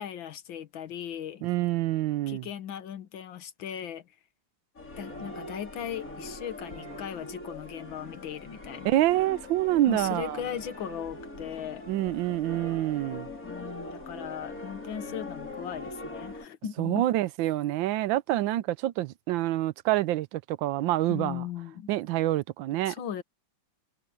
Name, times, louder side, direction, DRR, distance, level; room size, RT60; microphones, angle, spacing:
voice 1, 0.0-1.5 2.3-4.0 5.0-8.9 9.9-11.9 13.4-17.0 21.1-21.9 22.9-23.2, left 9 dB, 85° left, 2.0 m, -38 dB
voice 2, 1.4-2.5 8.8-10.4 11.9-13.3 16.8-21.4 21.9-22.9, right 15 dB, 85° right, 1.3 m, -27 dB
sound 1, 4.8-16.5, left 2 dB, 45° left, 5.0 m, -42 dB
omnidirectional pair, 2.1 m